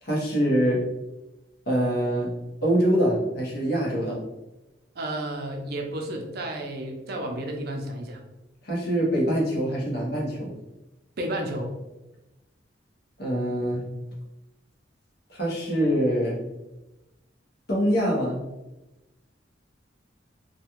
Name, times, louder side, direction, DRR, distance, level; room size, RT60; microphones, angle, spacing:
voice 1, 0.0-0.8 1.7-2.3 2.6-4.2 8.6-10.5 13.2-13.8 15.3-16.4 17.7-18.4, equal, 60° left, -4 dB, 0.9 m, -24 dB
voice 2, 5.0-8.2 11.2-11.7, right 1 dB, 55° right, 2 dB, 0.5 m, -32 dB
2.4 x 2.3 x 2.9 m, 1.0 s
head